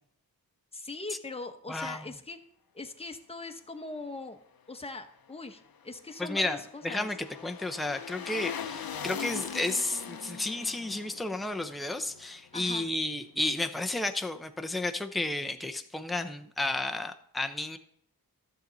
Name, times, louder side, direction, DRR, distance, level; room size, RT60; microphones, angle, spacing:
voice 1, 0.7-2.4 2.7-4.4 4.7-7.1 12.5-12.8, left 3 dB, 15° left, 5 dB, 1.0 m, -41 dB
voice 2, 1.7-2.1 6.2-17.8, left 2 dB, ahead, 6 dB, 0.7 m, -32 dB
sound 1, 5.7-12.9 13.2-13.3, left 8 dB, 70° left, 0.7 m, -41 dB
13.0 x 6.9 x 3.9 m, 0.69 s
cardioid pair, 50°, 38 cm